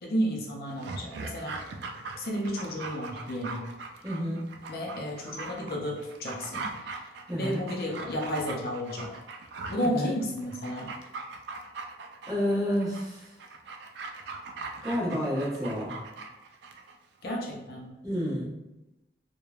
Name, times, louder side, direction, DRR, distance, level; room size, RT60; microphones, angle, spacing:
voice 1, 0.0-1.6 2.2-3.6 4.7-9.1 9.7-10.9 17.2-18.0, equal, 55° left, -1 dB, 0.5 m, -32 dB
Dog, 0.7-17.0 17.3-17.4, right 3 dB, 80° right, 0.3 m, -41 dB
voice 2, 4.0-4.5 7.3-7.6 9.8-10.1 12.3-13.3 14.8-16.0 18.0-18.5, equal, 20° right, -8 dB, 0.9 m, -30 dB
3.1 x 2.1 x 2.3 m, 0.95 s
head